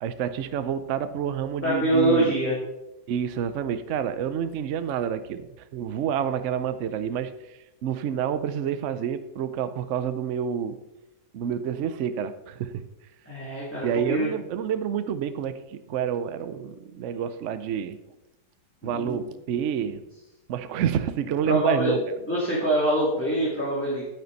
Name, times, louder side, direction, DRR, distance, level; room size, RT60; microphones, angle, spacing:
voice 1, 0.0-2.3 3.1-5.5 5.7-7.3 7.8-10.8 11.3-12.9 13.8-18.0 18.8-20.0 20.5-22.0, right 8 dB, 70° right, 11 dB, 0.7 m, -28 dB
voice 2, 1.6-2.6 13.3-14.3 18.8-19.2 21.5-21.9 22.3-24.1, right 1 dB, 5° left, -8 dB, 2.6 m, -24 dB
9.5 x 9.3 x 4.1 m, 0.95 s
omnidirectional pair, 1.9 m